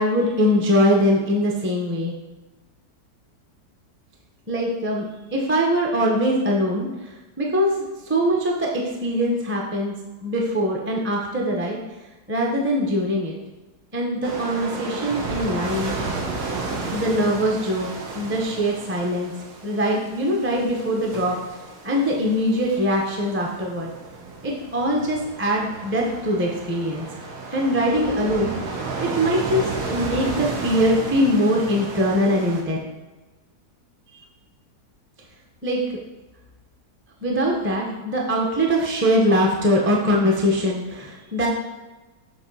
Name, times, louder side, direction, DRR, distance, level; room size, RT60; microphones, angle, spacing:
voice 1, 0.0-2.1 4.5-9.9 10.2-11.8 12.3-13.4 13.9-15.9 16.9-17.9 18.1-19.3 19.6-21.4 21.8-24.0 24.4-27.1 27.5-28.5 29.0-29.6 29.9-32.8 35.6-35.8 37.2-41.5, equal, 10° right, -1 dB, 0.6 m, -22 dB
sound 1, 14.2-32.6, right 3 dB, 85° right, 1.5 m, -33 dB
7.2 x 2.9 x 5.4 m, 1.1 s
omnidirectional pair, 1.7 m